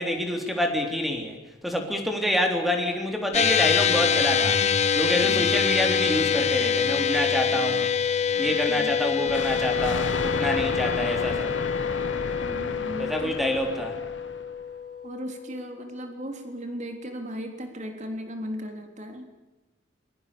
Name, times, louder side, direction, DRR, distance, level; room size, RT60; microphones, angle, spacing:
voice 1, 0.0-1.4 1.6-4.6 5.0-7.9 8.4-11.6 13.0-14.0, left 1 dB, ahead, 3 dB, 3.6 m, -27 dB
sound 1, 3.3-15.9, left 7 dB, 35° left, 1.0 m, -25 dB
Thunder, 9.3-14.6, left 3 dB, 70° left, 1.1 m, -32 dB
voice 2, 12.4-13.4 15.0-19.5, equal, 40° right, 5 dB, 3.5 m, -37 dB
27.5 x 23.0 x 7.0 m, 1.1 s
head